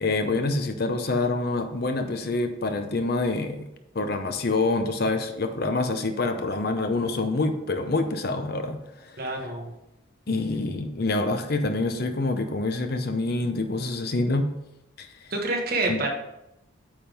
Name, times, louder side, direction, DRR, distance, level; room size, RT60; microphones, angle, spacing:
voice 1, 0.0-3.7 3.9-8.8 9.1-9.2 10.3-14.5 15.0-15.1 15.9-16.0, left 2 dB, 50° left, 7 dB, 0.7 m, -26 dB
voice 2, 9.2-9.7 15.3-16.1, right 2 dB, 45° right, 0 dB, 1.4 m, -27 dB
8.9 x 3.7 x 5.1 m, 0.88 s
head